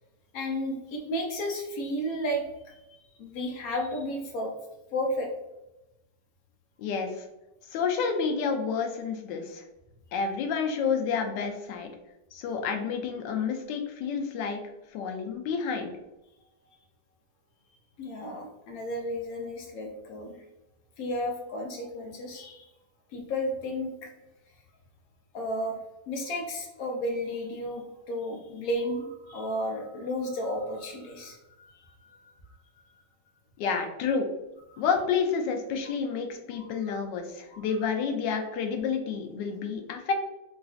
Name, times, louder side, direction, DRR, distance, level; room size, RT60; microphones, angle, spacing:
voice 1, 0.3-2.7 3.2-4.5 4.9-5.3 18.0-20.4 21.0-22.7 23.1-24.1 25.3-25.8 26.1-32.3 34.7-34.8 36.6-36.9 37.5-37.6, equal, 65° left, 2 dB, 1.0 m, -33 dB
voice 2, 6.8-7.3 7.7-9.6 10.1-11.9 12.3-14.6 14.9-15.9 33.6-34.3 34.8-40.1, left 6 dB, 90° left, 4 dB, 1.2 m, -29 dB
3.9 x 2.5 x 2.4 m, 0.95 s
omnidirectional pair, 1.9 m